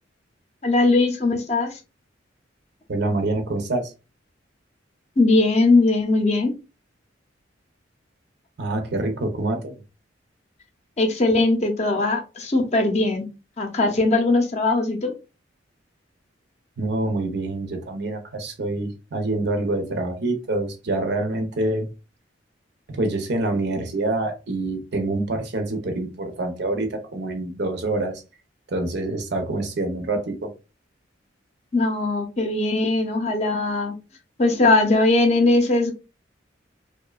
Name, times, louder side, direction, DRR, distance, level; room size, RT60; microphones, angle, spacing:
voice 1, 0.6-1.8 5.2-6.6 11.0-13.3 13.6-15.1 31.7-33.9 34.4-35.9, left 2 dB, 35° left, 0.5 m, -20 dB
voice 2, 2.9-3.9 8.6-9.8 16.8-21.9 22.9-28.2 28.7-30.5, right 2 dB, 60° right, 0.6 m, -26 dB
2.7 x 2.1 x 2.2 m
head